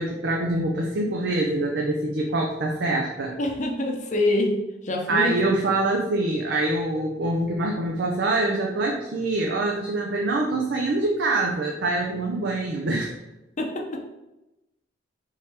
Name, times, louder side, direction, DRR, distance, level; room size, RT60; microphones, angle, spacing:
voice 1, 0.0-3.4 5.1-13.1, right 2 dB, 65° right, -1 dB, 0.5 m, -25 dB
voice 2, 3.4-4.6 4.8-5.3 13.6-14.0, left 1 dB, 40° left, 1 dB, 0.6 m, -25 dB
3.6 x 3.1 x 4.2 m, 0.98 s
head